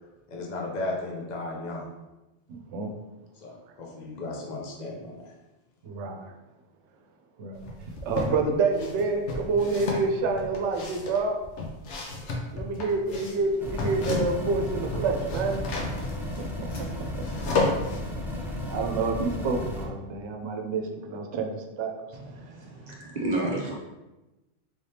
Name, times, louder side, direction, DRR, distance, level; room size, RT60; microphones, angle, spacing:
voice 1, 0.3-1.9 3.4-5.3, left 2 dB, 45° left, -2 dB, 0.7 m, -35 dB
voice 2, 2.5-2.9 5.8-6.3 7.4-7.7 8.0-11.4 12.5-15.6 16.4-16.7 18.7-21.9, right 4 dB, 80° right, 3 dB, 0.9 m, -28 dB
sound 1, 7.6-8.4 8.8-14.5 14.8-18.0, left 3 dB, 75° left, 1.0 m, -32 dB
sound 2, 13.6-19.8, left 1 dB, 5° right, 0.4 m, -34 dB
voice 3, 22.1-23.8, right 2 dB, 45° right, -3 dB, 0.7 m, -31 dB
3.5 x 3.3 x 2.8 m, 1.0 s
omnidirectional pair, 1.2 m